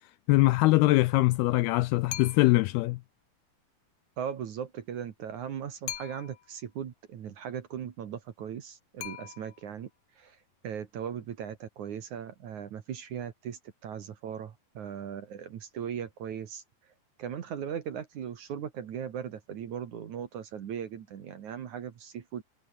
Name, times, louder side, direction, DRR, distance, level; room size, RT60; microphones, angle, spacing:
voice 1, 0.3-3.0, left 20 dB, 85° left, 2.3 m, -22 dB
sound 1, 2.1-2.7 5.9-6.6 9.0-9.8, left 12 dB, 65° left, 2.1 m, -41 dB
voice 2, 4.2-9.9 10.2-10.4 10.6-16.9 17.2-22.4, right 8 dB, 55° right, 2.5 m, -38 dB
omnidirectional pair, 5.0 m